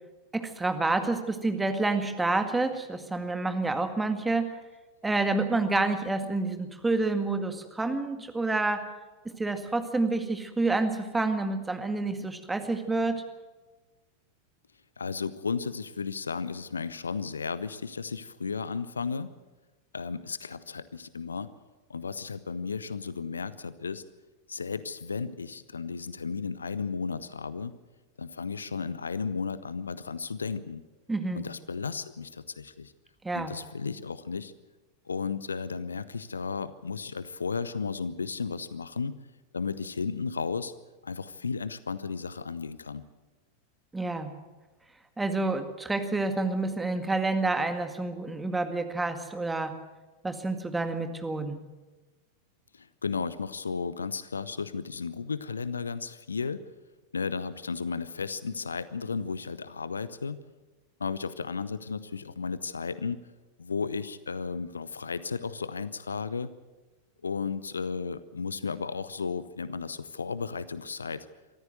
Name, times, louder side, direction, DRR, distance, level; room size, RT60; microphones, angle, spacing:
voice 1, 0.3-4.6 5.0-8.9 9.3-13.2 31.1-31.4 33.2-33.5 43.9-44.3 45.2-49.7 50.2-51.6, right 3 dB, 10° right, 7 dB, 2.0 m, -28 dB
voice 2, 15.0-19.3 19.9-21.5 21.9-24.0 24.5-27.7 28.2-30.8 31.3-32.9 33.3-34.5 35.1-39.2 39.5-40.7 41.0-43.0 52.7-56.6 57.1-60.4 61.0-63.2 63.6-66.5 67.2-71.3, left 5 dB, 75° left, 16 dB, 0.8 m, -34 dB
24.0 x 14.0 x 7.9 m, 1.2 s
figure-of-eight pair, 90°, 0 cm